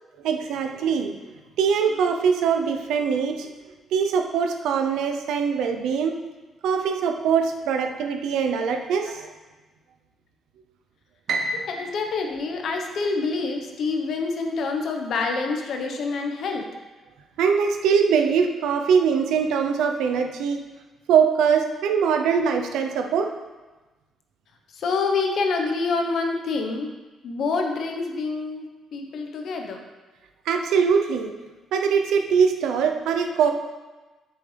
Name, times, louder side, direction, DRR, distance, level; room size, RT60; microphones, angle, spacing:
voice 1, 0.2-1.2 1.6-3.5 3.9-6.2 6.6-9.3 17.4-20.7 21.1-23.3 30.5-31.3 31.7-33.5, right 6 dB, 85° right, 5 dB, 0.7 m, -22 dB
Piano, 11.3-13.5, right 2 dB, 65° right, 1.0 m, -32 dB
voice 2, 11.7-16.7 24.7-26.9 27.2-28.6 28.9-29.8, left 4 dB, 65° left, 3 dB, 1.1 m, -26 dB
8.7 x 6.8 x 3.4 m, 1.2 s
cardioid pair, 90°, 0 cm